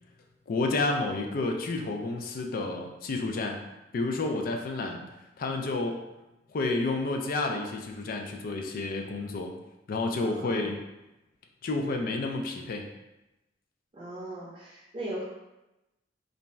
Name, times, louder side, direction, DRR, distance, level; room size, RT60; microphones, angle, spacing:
voice 1, 0.5-3.6 3.9-5.0 5.4-6.1 6.5-9.5 9.9-10.8 11.6-12.9, left 2 dB, 50° left, 4 dB, 0.4 m, -30 dB
voice 2, 10.2-10.8 13.9-15.3, right 1 dB, 30° right, -6 dB, 0.6 m, -38 dB
2.6 x 2.2 x 3.0 m, 0.97 s
head